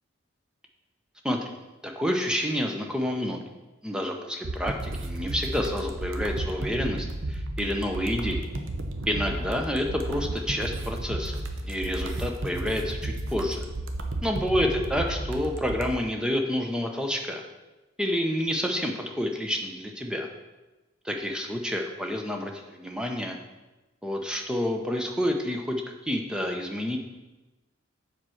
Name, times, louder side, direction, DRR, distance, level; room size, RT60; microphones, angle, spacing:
voice 1, 1.2-1.6 1.8-3.4 3.8-8.5 9.1-13.7 14.2-17.4 18.0-20.3 21.0-23.4 24.0-27.0, equal, 5° right, 2 dB, 0.7 m, -29 dB
sound 1, 4.4-15.9, right 2 dB, 75° right, 0.8 m, -33 dB
7.2 x 4.5 x 6.3 m, 1.1 s
head